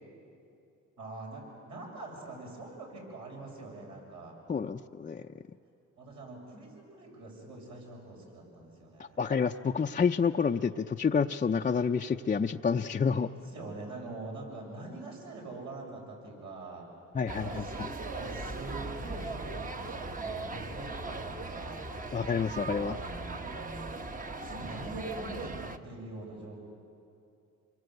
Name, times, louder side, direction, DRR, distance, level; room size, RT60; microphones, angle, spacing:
voice 1, 1.0-4.4 6.0-9.2 13.4-16.8 17.3-21.9 22.7-24.0 24.4-26.6, right 2 dB, 65° right, -1 dB, 7.4 m, -44 dB
voice 2, 4.5-5.2 9.2-13.3 17.1-17.9 22.1-23.0, left 6 dB, 25° left, 3 dB, 0.6 m, -29 dB
sound 1, 17.3-25.8, right 3 dB, 25° right, 1.2 m, -39 dB
28.5 x 22.0 x 8.0 m, 2.6 s
cardioid pair, 90°, 30 cm